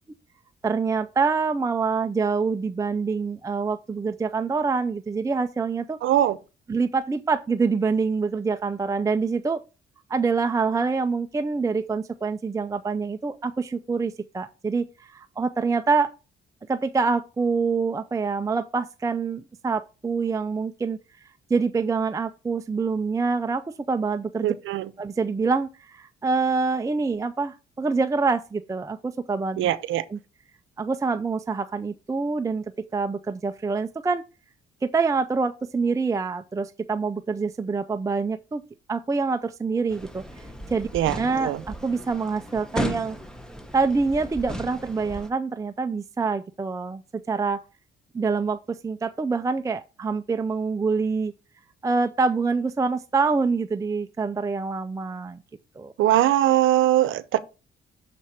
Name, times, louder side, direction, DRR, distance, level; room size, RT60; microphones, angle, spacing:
voice 1, 0.6-6.0 6.7-9.6 10.1-16.1 16.7-21.0 21.5-24.5 25.0-29.6 30.1-30.2 30.8-34.2 34.8-38.6 38.9-40.2 40.7-40.9 41.2-43.2 43.7-47.6 48.1-51.3 51.8-55.4 55.8-55.9, right 4 dB, 15° right, 0.4 m, -26 dB
voice 2, 6.0-6.4 24.4-24.9 29.6-30.1 40.9-41.6 56.0-57.4, right 13 dB, 80° right, 0.7 m, -21 dB
sound 1, 39.9-45.3, equal, 5° left, 1.0 m, -35 dB
6.8 x 4.6 x 4.3 m
cardioid pair, 90°, 20 cm